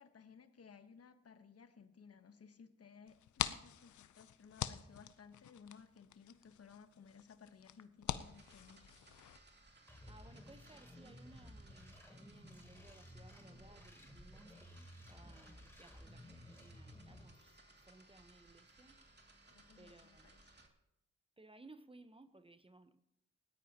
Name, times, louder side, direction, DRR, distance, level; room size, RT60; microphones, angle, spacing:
voice 1, 0.0-8.9 19.5-20.4, left 6 dB, 55° left, 10 dB, 1.2 m, -59 dB
sound 1, 3.1-9.4, left 11 dB, 80° left, 0.6 m, -45 dB
sound 2, 8.0-20.7, right 2 dB, 35° right, 2.6 m, -64 dB
sound 3, 9.9-17.2, left 1 dB, 10° left, 3.2 m, -56 dB
voice 2, 10.1-19.0 19.8-20.3 21.4-23.0, right 2 dB, 20° right, 11 dB, 1.0 m, -61 dB
19.5 x 14.0 x 2.9 m, 0.85 s
cardioid pair, 55°, 29 cm